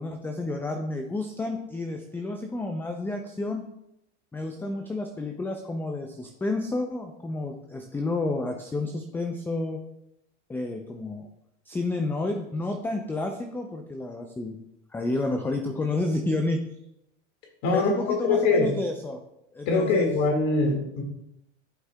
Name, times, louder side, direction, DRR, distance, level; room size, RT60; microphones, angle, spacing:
voice 1, 0.0-3.6 4.3-9.8 10.5-11.2 11.7-14.6 14.9-16.6 17.7-19.2 19.5-20.1, left 2 dB, 5° left, 4 dB, 0.4 m, -30 dB
voice 2, 17.6-18.7 19.7-21.0, left 3 dB, 55° left, 2 dB, 2.0 m, -23 dB
11.0 x 4.8 x 2.3 m, 0.83 s
hypercardioid pair, 110°, 35 cm